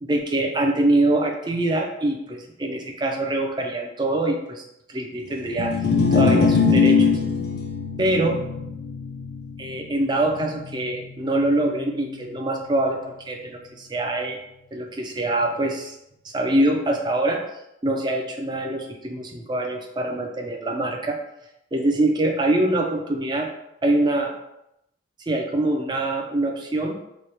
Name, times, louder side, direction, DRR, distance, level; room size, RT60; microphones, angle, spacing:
voice 1, 0.0-4.6 4.9-5.7 6.1-7.1 8.0-8.4 9.6-13.0 13.3-14.4 14.7-16.0 16.2-17.4 17.8-21.2 21.7-23.5 23.8-24.3 25.2-27.0, right 1 dB, 25° right, 2 dB, 0.4 m, -24 dB
sound 1, 5.5-11.8, left 5 dB, 55° left, 0.4 m, -22 dB
3.1 x 2.2 x 4.2 m, 0.83 s
head